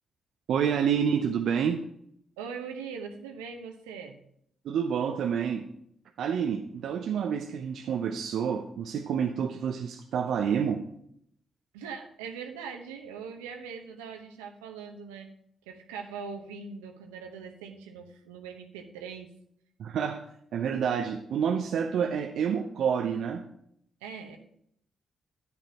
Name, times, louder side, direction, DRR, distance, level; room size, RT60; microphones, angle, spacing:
voice 1, 0.5-1.8 4.6-5.6 6.2-10.8 19.8-20.2 20.5-23.4, right 7 dB, 70° right, 4 dB, 0.6 m, -28 dB
voice 2, 2.4-4.2 11.7-15.3 15.7-19.3 24.0-24.4, right 6 dB, 90° right, 4 dB, 1.0 m, -41 dB
10.5 x 9.6 x 2.9 m, 0.70 s
hypercardioid pair, 40°, 0 cm